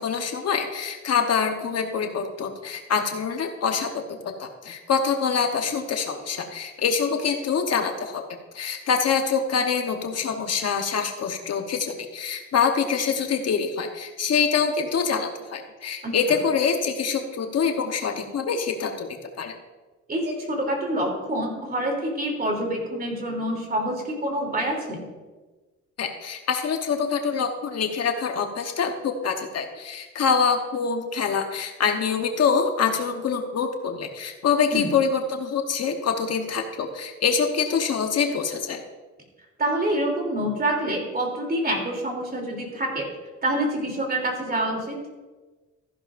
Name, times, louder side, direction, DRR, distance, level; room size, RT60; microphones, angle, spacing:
voice 1, 0.0-8.2 8.5-19.5 26.0-38.8, left 6 dB, 55° left, 5 dB, 1.1 m, -25 dB
voice 2, 20.1-25.1 34.7-34.9 39.6-43.1 43.4-45.0, right 1 dB, 30° right, 1 dB, 3.1 m, -26 dB
14.0 x 10.5 x 2.6 m, 1.2 s
cardioid pair, 90°, 30 cm